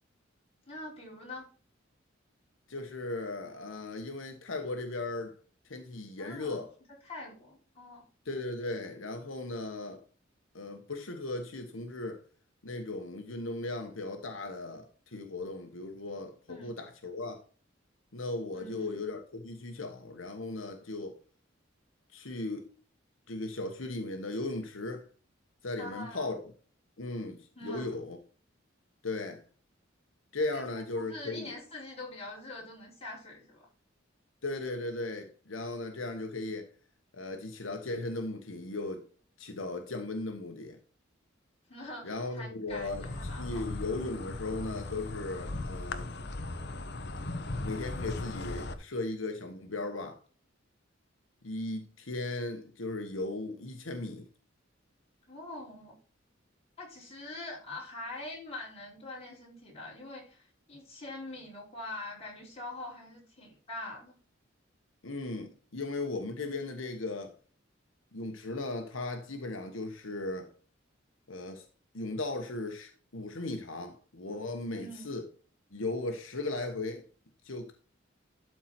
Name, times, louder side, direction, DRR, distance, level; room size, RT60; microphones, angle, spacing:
voice 1, 0.7-1.5 6.2-6.6 7.0-8.1 16.5-16.7 18.5-19.0 25.8-26.4 27.6-27.9 30.5-30.6 30.9-33.7 41.7-43.6 55.3-55.9 56.8-64.1 74.7-75.1, left 2 dB, 30° left, 5.5 m, -44 dB
voice 2, 2.7-5.3 5.6-6.7 8.2-10.0 10.5-12.2 12.6-17.4 18.1-21.2 22.1-22.7 23.3-25.0 25.6-26.5 27.0-28.2 29.0-29.4 30.3-31.5 34.4-36.7 37.1-39.0 39.4-40.8 42.0-43.1 43.4-46.1 47.6-50.2 51.4-54.3 65.0-67.4 68.1-70.5 71.3-71.6 71.9-75.2 75.7-77.0 77.4-77.7, left 2 dB, 85° left, 1.2 m, -37 dB
Insect, 42.7-48.7, left 2 dB, 55° left, 1.0 m, -38 dB
12.0 x 4.6 x 4.3 m
head